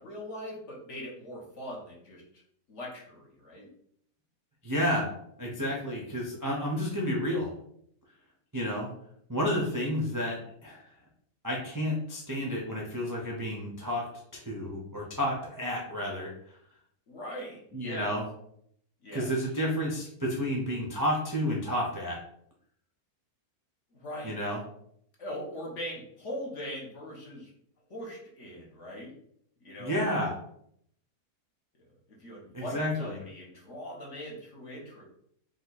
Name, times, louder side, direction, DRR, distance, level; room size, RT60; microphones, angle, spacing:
voice 1, 0.0-2.2 2.7-3.7 17.1-18.1 19.0-19.3 23.9-24.4 25.2-27.5 27.9-29.1 29.6-30.0 31.7-35.0, equal, 50° left, -3 dB, 1.4 m, -41 dB
voice 2, 4.6-5.1 5.4-7.5 8.5-8.9 9.3-10.8 11.4-14.0 14.4-16.3 17.7-18.2 19.1-22.2 24.2-24.6 29.8-30.4 32.5-33.2, equal, 20° right, -3 dB, 0.5 m, -31 dB
4.9 x 2.5 x 4.0 m, 0.69 s
omnidirectional pair, 1.8 m